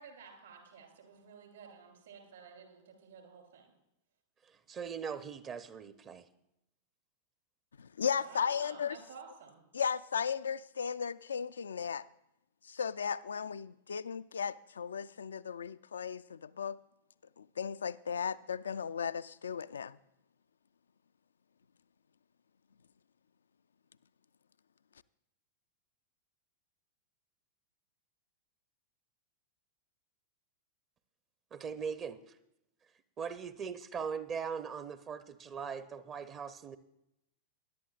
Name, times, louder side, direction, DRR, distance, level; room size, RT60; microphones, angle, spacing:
voice 1, 0.0-3.7 8.1-9.6, right 6 dB, 65° right, 3.1 m, -53 dB
voice 2, 4.7-6.3 31.5-32.2 33.2-36.8, right 6 dB, 30° right, 0.6 m, -40 dB
voice 3, 7.8-9.0 9.7-12.0 12.6-16.8 17.4-20.0, left 7 dB, 70° left, 0.3 m, -36 dB
20.5 x 11.0 x 2.4 m
figure-of-eight pair, 95°, 0 cm